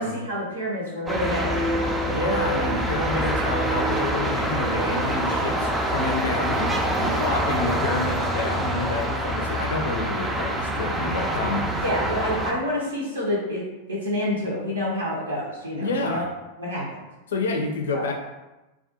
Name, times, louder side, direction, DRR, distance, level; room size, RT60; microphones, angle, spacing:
voice 1, 0.0-1.7 3.5-3.9 6.9-7.5 11.8-13.6 13.9-16.2 16.6-16.9 17.9-18.1, left 1 dB, 75° right, -5 dB, 0.6 m, -28 dB
sound 1, 1.1-12.5, right 1 dB, 10° right, 0.3 m, -25 dB
voice 2, 2.1-11.8 15.8-16.2 17.3-18.1, left 3 dB, 65° left, 2 dB, 0.4 m, -29 dB
2.3 x 2.2 x 2.7 m, 1.0 s
figure-of-eight pair, 90°, 0 cm